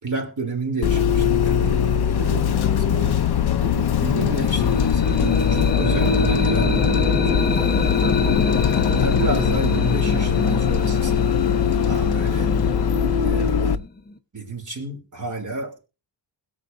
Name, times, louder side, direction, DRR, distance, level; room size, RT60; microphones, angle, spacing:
voice 1, 0.0-3.2 4.0-11.3 11.8-12.5 13.2-13.8 14.3-15.9, right 3 dB, 40° right, 3 dB, 3.0 m, -31 dB
Bus, 0.8-13.7, left 7 dB, 60° left, 0.7 m, -20 dB
sound 1, 1.1-7.1, right 4 dB, 75° right, 3.0 m, -37 dB
sound 2, 4.4-14.2, left 3 dB, 20° left, 0.9 m, -28 dB
21.5 x 7.2 x 2.6 m, 0.32 s
wide cardioid pair, 140°, 45 cm